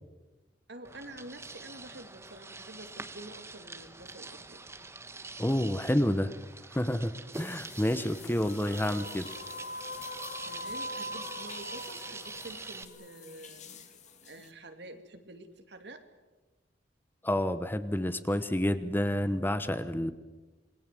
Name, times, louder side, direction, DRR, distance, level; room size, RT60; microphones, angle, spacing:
voice 1, 0.7-4.6 10.5-13.8 14.2-16.0, right 2 dB, 65° right, 7 dB, 2.6 m, -48 dB
sound 1, 0.8-12.8, right 3 dB, 15° right, 1.2 m, -45 dB
voice 2, 5.4-6.3 6.7-9.3 17.2-20.1, left 1 dB, 10° left, 11 dB, 0.9 m, -29 dB
sound 2, 7.3-14.5, left 8 dB, 40° left, 2.2 m, -52 dB
sound 3, 8.4-13.8, left 1 dB, 60° left, 5.9 m, -43 dB
27.5 x 21.0 x 7.7 m, 1.2 s
head